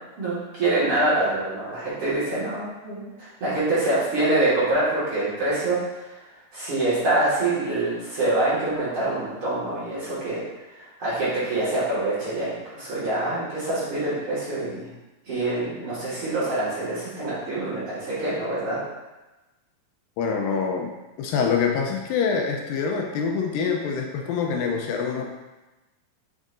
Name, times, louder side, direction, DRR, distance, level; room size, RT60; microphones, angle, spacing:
voice 1, 0.2-5.8 6.5-10.4 10.8-14.9 15.3-18.8, right 2 dB, 45° right, -10 dB, 2.1 m, -25 dB
voice 2, 20.2-20.9 21.2-25.3, left 6 dB, 85° left, 1 dB, 2.3 m, -25 dB
6.4 x 6.0 x 2.6 m, 1.1 s
omnidirectional pair, 4.2 m